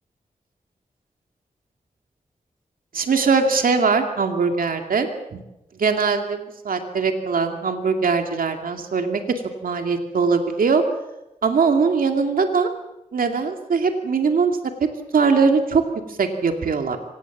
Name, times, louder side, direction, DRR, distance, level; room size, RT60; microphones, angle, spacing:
voice 1, 2.9-5.4 5.8-9.2 9.6-10.8 11.4-12.7 13.1-17.0, right 5 dB, 80° right, 5 dB, 2.3 m, -21 dB
24.5 x 18.5 x 7.2 m, 0.92 s
cardioid pair, 60°, 14 cm